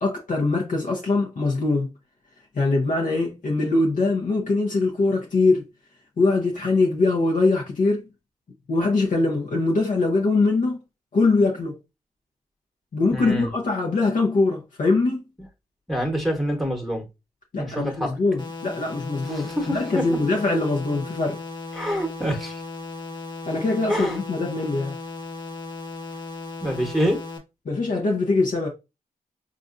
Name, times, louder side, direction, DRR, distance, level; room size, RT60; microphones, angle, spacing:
voice 1, 0.0-1.9 2.5-5.6 6.2-8.0 8.7-10.8 11.1-11.7 12.9-15.2 17.5-21.4 23.5-25.0 27.7-28.7, left 3 dB, 55° left, 0.8 m, -22 dB
voice 2, 13.1-13.5 15.9-17.1 17.6-18.2 19.2-20.1 21.7-22.6 23.9-24.2 26.6-27.2, equal, ahead, 1.2 m, -26 dB
sound 1, 18.4-27.4, left 3 dB, 30° left, 1.2 m, -36 dB
4.0 x 2.5 x 2.5 m
cardioid pair, 55°, 16 cm